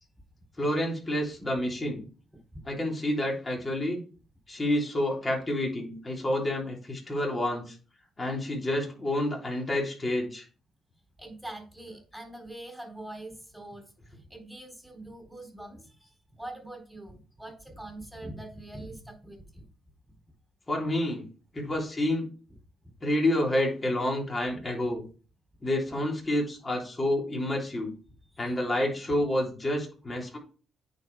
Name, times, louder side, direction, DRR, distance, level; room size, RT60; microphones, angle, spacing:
voice 1, 0.6-2.0 2.7-4.0 4.5-7.7 8.2-10.4 20.7-21.2 21.5-22.3 23.0-25.0 25.6-27.9 28.4-30.4, left 1 dB, 25° left, -1 dB, 3.3 m, -29 dB
voice 2, 11.2-19.7 22.8-22.9 24.5-24.7 28.3-28.6, right 1 dB, ahead, 2 dB, 4.0 m, -44 dB
9.1 x 4.9 x 4.7 m, 0.37 s
cardioid pair, 90°, 0 cm